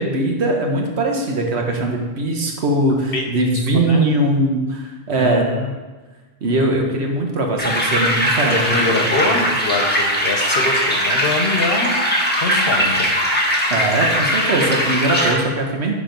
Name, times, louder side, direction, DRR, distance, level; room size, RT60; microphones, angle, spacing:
voice 1, 0.0-5.4 6.4-8.6 9.3-9.5 13.7-16.0, right 2 dB, 90° right, 1 dB, 1.4 m, -20 dB
voice 2, 3.7-4.1 5.2-5.7 8.5-13.2, left 2 dB, 60° left, 3 dB, 1.2 m, -24 dB
sound 1, 7.6-15.3, equal, 10° left, 1.3 m, -20 dB
10.5 x 3.7 x 5.2 m, 1.3 s
omnidirectional pair, 1.1 m